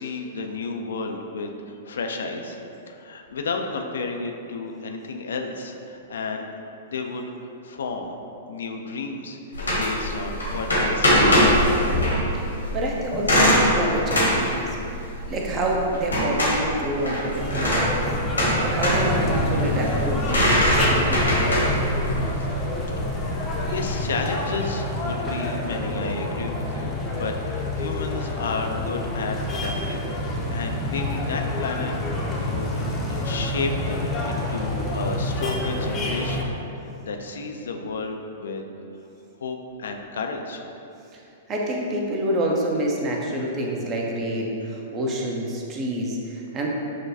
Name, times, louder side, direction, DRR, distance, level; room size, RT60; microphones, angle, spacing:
voice 1, 0.0-1.5 1.8-2.6 2.9-6.5 6.9-7.2 7.6-8.1 8.5-9.4 9.7-11.8 23.1-23.3 23.7-30.1 30.5-32.2 32.5-32.7 33.1-38.6 39.4-40.6, left 3 dB, 70° left, 3 dB, 0.3 m, -32 dB
sound 1, 9.5-24.0, equal, 90° left, 1.1 m, -23 dB
voice 2, 12.7-14.8 15.3-21.6 41.1-41.2 41.5-46.7, right 1 dB, 30° right, -1 dB, 0.6 m, -27 dB
sound 2, 17.4-36.4, left 1 dB, 20° left, 0.6 m, -27 dB
6.3 x 2.2 x 2.7 m, 2.8 s
figure-of-eight pair, 110°, 0 cm